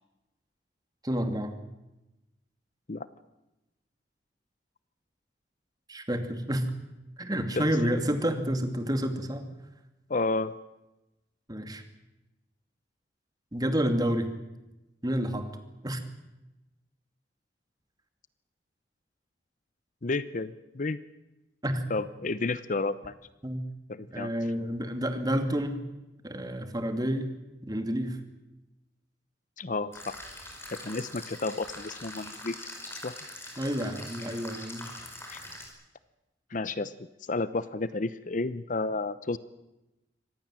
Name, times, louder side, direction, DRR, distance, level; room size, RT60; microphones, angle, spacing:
voice 1, 1.0-1.5 5.9-6.7 7.2-9.5 11.5-11.8 13.5-14.3 15.0-15.5 15.8-16.0 21.6-21.8 23.4-23.7 24.1-25.8 26.2-27.3 27.6-28.2 33.6-34.9 35.2-35.4, equal, 20° right, 8 dB, 2.4 m, -29 dB
voice 2, 10.1-10.5 20.0-21.0 21.9-23.1 23.9-24.3 29.6-30.1 30.7-32.6 33.0-33.2 35.3-35.4 36.5-36.9 37.3-39.4, left 3 dB, 45° left, 15 dB, 0.8 m, -31 dB
sound 1, 29.9-35.7, left 1 dB, 15° left, 5.3 m, -43 dB
25.0 x 18.5 x 7.6 m, 0.97 s
head